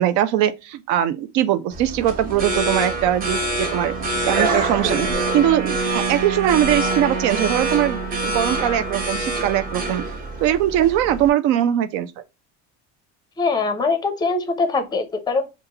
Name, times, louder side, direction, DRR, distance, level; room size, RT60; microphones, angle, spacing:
voice 1, 0.0-3.9 4.3-5.1 5.3-10.0 10.4-12.1, right 11 dB, 75° right, 0.6 m, -21 dB
sound 1, 1.7-11.3, right 2 dB, 30° right, 0.9 m, -26 dB
sound 2, 3.8-10.2, right 7 dB, 60° right, 1.4 m, -31 dB
voice 2, 13.4-15.4, left 3 dB, 15° left, 0.5 m, -22 dB
5.1 x 2.5 x 2.8 m
cardioid pair, 165°, 29 cm